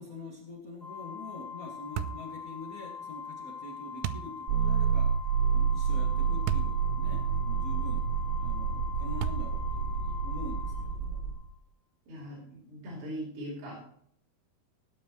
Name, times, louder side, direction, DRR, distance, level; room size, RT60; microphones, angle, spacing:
voice 1, 0.0-5.2 5.5-8.0 8.4-11.2, left 2 dB, 80° left, -1 dB, 0.7 m, -45 dB
Organ, 0.8-11.5, left 6 dB, 40° left, 0.8 m, -42 dB
sound 1, 2.0-2.3 4.0-4.3 6.5-6.8 7.4-7.5 9.2-9.7, right 11 dB, 90° right, 3.2 m, -33 dB
sound 2, 4.5-11.3, right 7 dB, 40° right, 6.6 m, -29 dB
voice 2, 12.1-13.8, equal, 60° right, -5 dB, 6.3 m, -40 dB
17.0 x 9.7 x 3.2 m, 0.65 s
omnidirectional pair, 5.4 m